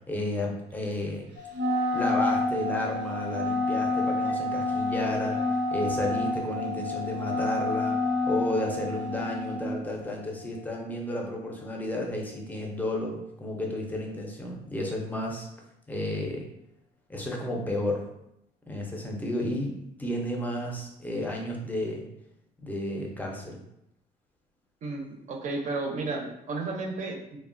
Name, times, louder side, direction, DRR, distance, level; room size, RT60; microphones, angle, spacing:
voice 1, 0.1-1.3 1.9-8.0 8.2-15.5 15.9-16.5 17.1-18.0 18.7-22.0 22.6-23.6, left 1 dB, 10° left, 0 dB, 0.5 m, -32 dB
sound 1, 1.4-12.7, left 10 dB, 85° left, 0.6 m, -41 dB
Wind instrument woodwind instrument, 1.5-9.7, left 2 dB, 90° right, 0.6 m, -29 dB
voice 2, 24.8-27.4, right 3 dB, 45° right, 2 dB, 0.5 m, -33 dB
2.9 x 2.1 x 2.5 m, 0.81 s
cardioid pair, 110°, 17 cm